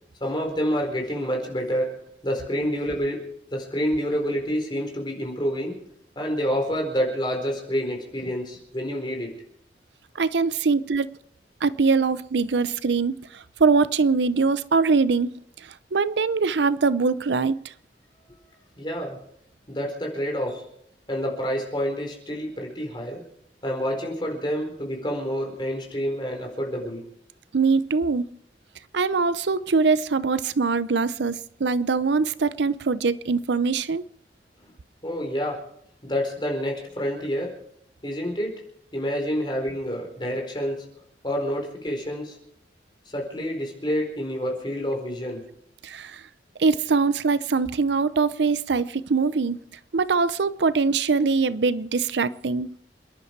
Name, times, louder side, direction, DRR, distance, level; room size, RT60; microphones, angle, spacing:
voice 1, 0.2-1.9 2.2-3.2 3.5-5.8 6.2-9.3 18.8-19.2 19.7-20.6 21.1-23.2 23.6-27.0 34.6-34.7 35.0-35.6 36.0-37.5 38.0-38.6 38.9-40.8 41.2-42.4 43.1-45.4, equal, 25° left, 4.3 m, -28 dB
voice 2, 10.2-11.1 11.6-15.4 15.9-17.6 27.5-28.2 28.9-34.0 45.8-46.2 46.6-49.6 49.9-52.7, right 4 dB, 80° right, 0.6 m, -22 dB
28.5 x 11.0 x 4.7 m
head